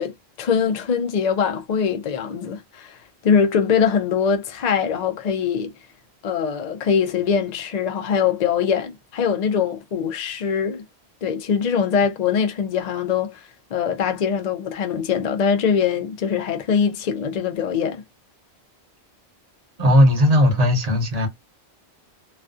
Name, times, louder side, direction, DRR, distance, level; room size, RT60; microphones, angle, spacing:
voice 1, 0.0-5.7 6.2-10.8 11.2-18.0, left 7 dB, 60° left, 0.4 m, -22 dB
voice 2, 19.8-21.3, left 1 dB, 40° right, 0.8 m, -16 dB
2.4 x 2.3 x 2.4 m
omnidirectional pair, 1.1 m